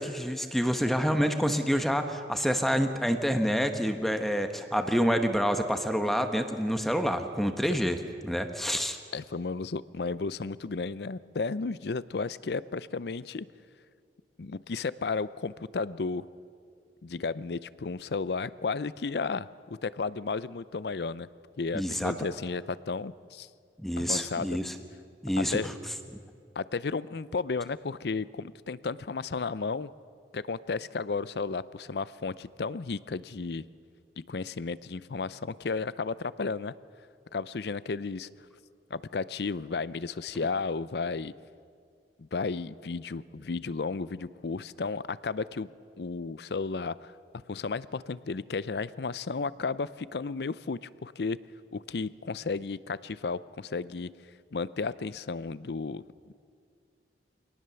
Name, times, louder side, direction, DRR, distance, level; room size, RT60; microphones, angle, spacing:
voice 1, 0.0-8.0 8.2-9.0 21.7-22.1 23.8-24.7 25.2-25.6, equal, ahead, 6 dB, 1.0 m, -27 dB
voice 2, 9.1-13.5 14.4-16.2 17.0-21.3 21.6-23.5 24.0-24.6 25.5-25.7 26.6-29.9 30.3-33.6 34.3-36.7 37.3-38.3 38.9-41.3 42.2-45.7 46.0-47.1 47.5-51.4 51.7-54.1 54.5-56.3, left 4 dB, 70° left, 17 dB, 0.5 m, -33 dB
24.5 x 18.5 x 6.9 m, 2.2 s
head